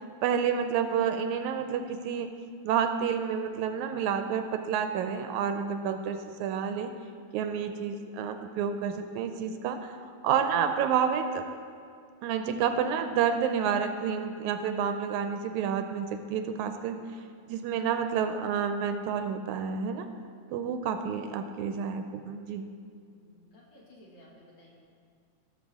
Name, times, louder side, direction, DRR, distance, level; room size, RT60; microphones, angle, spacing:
voice 1, 0.2-2.3 2.6-6.9 7.3-9.9 10.2-11.4 12.2-17.0 17.5-20.1 20.5-22.7, right 7 dB, 80° right, 7 dB, 1.9 m, -29 dB
voice 2, 23.0-24.7, left 1 dB, 55° left, -5 dB, 2.7 m, -56 dB
17.0 x 6.4 x 3.6 m, 2.3 s
omnidirectional pair, 3.5 m